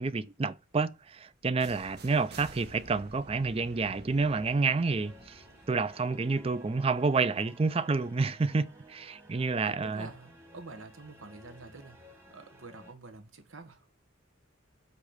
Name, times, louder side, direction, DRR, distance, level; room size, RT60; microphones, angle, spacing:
voice 1, 0.0-5.4 5.7-10.1, right 4 dB, 30° right, 0.4 m, -29 dB
sound 1, 1.6-7.4, right 2 dB, 55° right, 1.1 m, -51 dB
sound 2, 4.2-12.9, equal, 10° right, 1.5 m, -55 dB
voice 2, 9.6-13.9, right 3 dB, 85° right, 1.4 m, -48 dB
8.4 x 3.2 x 6.5 m
head